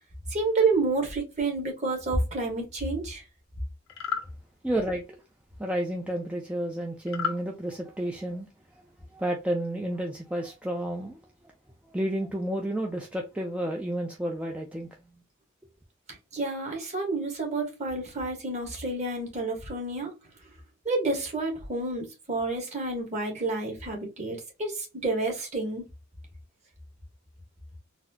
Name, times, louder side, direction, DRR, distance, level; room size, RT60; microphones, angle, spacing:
voice 1, 0.3-3.2 16.3-20.1 20.8-25.8, right 3 dB, 35° right, 1.3 m, -29 dB
sound 1, 3.9-4.3 7.1-7.4, left 7 dB, 90° left, 0.8 m, -31 dB
voice 2, 4.6-5.2 5.6-8.5 9.1-11.2 11.9-14.9, right 1 dB, 5° right, 0.4 m, -31 dB
4.0 x 2.0 x 2.7 m
head